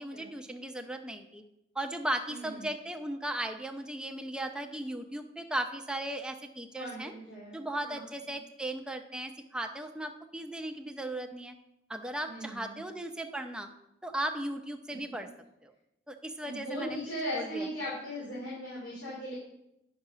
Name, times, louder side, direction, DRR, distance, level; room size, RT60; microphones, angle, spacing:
voice 1, 0.0-1.4 1.7-7.1 7.5-11.5 11.9-13.7 14.0-15.3 15.6-15.7 16.1-17.0 17.3-17.7, right 1 dB, 5° right, 4 dB, 0.6 m, -37 dB
voice 2, 2.3-2.7 6.8-7.6 7.8-8.3 12.2-12.8 14.9-15.0 16.4-19.3, equal, 80° left, -7 dB, 3.5 m, -38 dB
9.7 x 5.9 x 5.6 m, 0.86 s
head